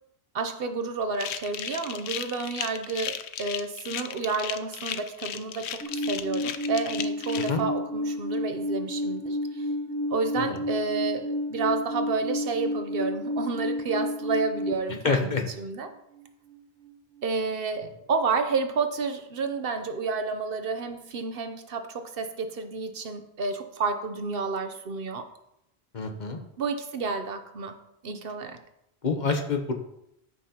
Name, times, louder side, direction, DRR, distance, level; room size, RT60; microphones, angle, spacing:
voice 1, 0.3-9.7 10.1-15.9 17.2-25.3 26.6-27.7 28.0-28.6, right 4 dB, 60° right, 7 dB, 0.9 m, -30 dB
sound 1, 1.1-7.5, left 9 dB, 90° left, 0.9 m, -35 dB
Alarm, 5.8-14.7, left 1 dB, 5° left, 0.8 m, -30 dB
voice 2, 15.0-15.4 25.9-26.4 29.0-29.7, left 4 dB, 45° left, 5 dB, 0.9 m, -27 dB
14.0 x 5.7 x 2.9 m, 0.80 s
omnidirectional pair, 1.1 m